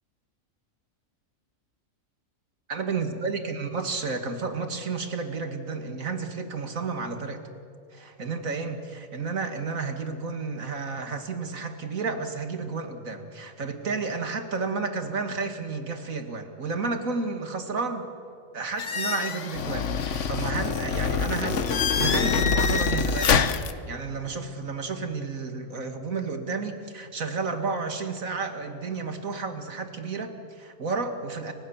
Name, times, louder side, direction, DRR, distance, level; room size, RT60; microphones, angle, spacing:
voice 1, 2.7-7.4 7.9-18.1 18.5-31.5, right 4 dB, 85° right, 7 dB, 2.5 m, -32 dB
sound 1, 18.8-23.7, left 6 dB, 65° left, 1.4 m, -25 dB
29.5 x 25.5 x 7.3 m, 2.4 s
omnidirectional pair, 1.4 m